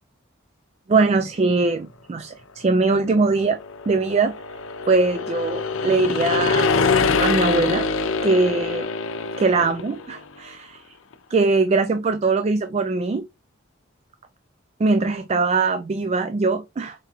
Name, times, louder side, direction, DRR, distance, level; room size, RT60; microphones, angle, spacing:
voice 1, 0.9-3.6 3.9-4.3 4.9-6.7 7.2-7.9 8.2-8.9 9.4-10.9 11.3-13.3 14.8-17.0, right 3 dB, 30° right, 0.3 m, -21 dB
sound 1, 3.2-10.2, left 4 dB, 80° left, 0.6 m, -24 dB
4.5 x 3.6 x 2.9 m
head